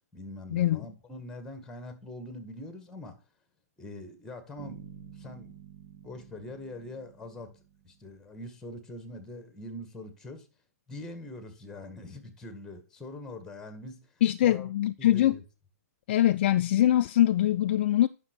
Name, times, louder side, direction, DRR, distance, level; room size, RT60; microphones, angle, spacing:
voice 1, 0.1-3.2 3.8-5.6 6.0-7.5 7.8-10.5 10.9-14.1 14.4-14.7 15.0-15.4, left 1 dB, 5° left, 1.8 m, -43 dB
sound 1, 4.6-8.3, right 8 dB, 50° right, 2.0 m, -50 dB
voice 2, 14.2-15.4 16.1-18.1, left 12 dB, 45° left, 0.4 m, -23 dB
9.7 x 6.1 x 4.5 m
figure-of-eight pair, 130°, 8 cm